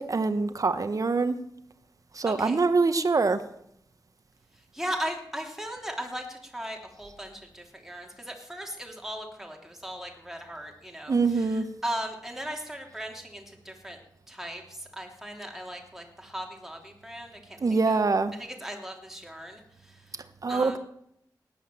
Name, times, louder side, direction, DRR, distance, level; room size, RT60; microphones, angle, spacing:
voice 1, 0.0-1.4 2.1-3.4 11.1-11.6 17.6-18.3 20.4-20.8, right 4 dB, 50° right, 11 dB, 1.2 m, -24 dB
voice 2, 2.3-2.6 4.7-14.0 14.3-18.0 18.4-20.1 20.5-20.8, right 1 dB, 5° right, 1 dB, 3.0 m, -38 dB
17.5 x 11.0 x 7.6 m, 0.77 s
wide cardioid pair, 100°, 8 cm